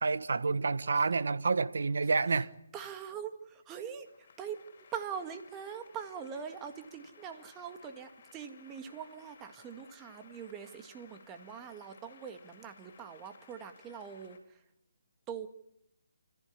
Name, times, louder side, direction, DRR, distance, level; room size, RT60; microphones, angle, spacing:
voice 1, 0.0-2.5, right 4 dB, 65° right, 1.2 m, -29 dB
voice 2, 2.7-4.6 4.9-14.6 15.3-15.5, right 7 dB, 15° right, 1.9 m, -43 dB
sound 1, 4.1-14.4, left 5 dB, 45° left, 4.5 m, -59 dB
29.5 x 14.5 x 9.9 m
figure-of-eight pair, 150°, 0 cm